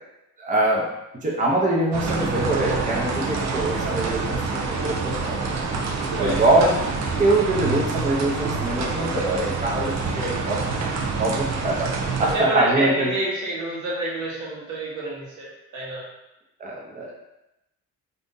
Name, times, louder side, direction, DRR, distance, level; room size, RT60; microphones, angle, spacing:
voice 1, 0.4-0.9 1.2-5.4 6.2-6.8 7.2-13.1 16.6-17.2, right 2 dB, 25° right, -3 dB, 0.7 m, -23 dB
sound 1, 1.9-12.4, right 4 dB, 60° right, 0.6 m, -27 dB
voice 2, 3.5-3.9 6.1-6.4 12.2-16.0, right 1 dB, 80° right, -4 dB, 1.1 m, -28 dB
2.6 x 2.4 x 3.6 m, 0.92 s
cardioid pair, 90°, 30 cm